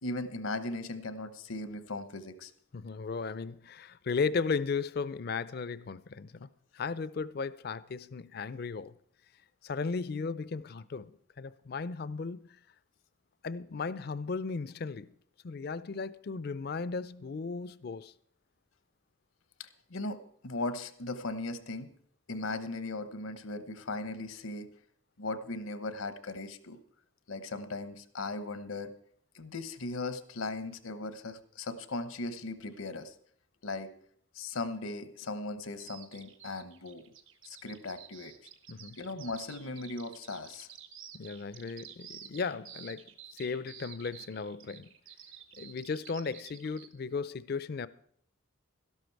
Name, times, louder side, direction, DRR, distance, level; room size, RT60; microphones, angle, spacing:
voice 1, 0.0-2.5 19.6-21.9 22.3-24.7 25.2-26.8 27.3-28.9 29.3-33.1 33.6-33.9 34.3-37.0 37.4-38.3 39.0-40.7, left 2 dB, 85° left, 0.9 m, -38 dB
voice 2, 2.7-6.5 6.7-8.9 9.6-12.5 13.4-15.1 15.4-18.1 38.7-39.0 41.1-44.9 45.6-47.9, left 4 dB, 50° left, 0.4 m, -36 dB
Bird vocalization bird call bird song, 35.8-46.9, right 9 dB, 70° right, 1.2 m, -50 dB
12.5 x 11.5 x 4.6 m
head